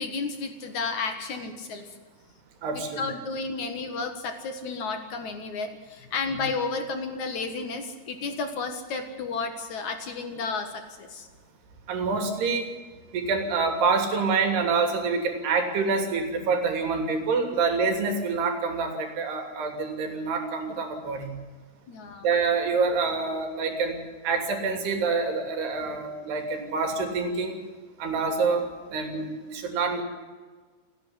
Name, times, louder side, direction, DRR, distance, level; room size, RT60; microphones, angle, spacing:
voice 1, 0.0-1.9 2.7-11.3 21.9-22.3, left 4 dB, 55° left, 6 dB, 2.6 m, -32 dB
voice 2, 2.6-3.0 6.3-6.4 11.9-12.7 13.1-21.3 22.2-27.6 28.0-29.2 29.5-30.0, right 4 dB, 90° right, 5 dB, 5.0 m, -26 dB
29.5 x 10.5 x 9.8 m, 1.4 s
omnidirectional pair, 4.5 m